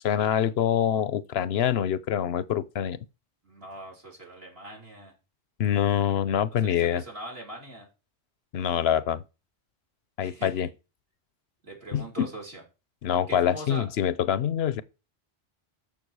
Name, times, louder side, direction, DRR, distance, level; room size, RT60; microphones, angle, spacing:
voice 1, 0.0-3.0 5.6-7.0 8.5-9.2 10.2-10.7 11.9-12.3 13.0-14.8, left 9 dB, 75° left, 0.9 m, -25 dB
voice 2, 3.4-5.1 6.6-7.9 10.2-10.7 11.6-12.6 13.3-13.9, right 1 dB, 65° right, 5.1 m, -41 dB
13.5 x 5.9 x 4.7 m
omnidirectional pair, 1.1 m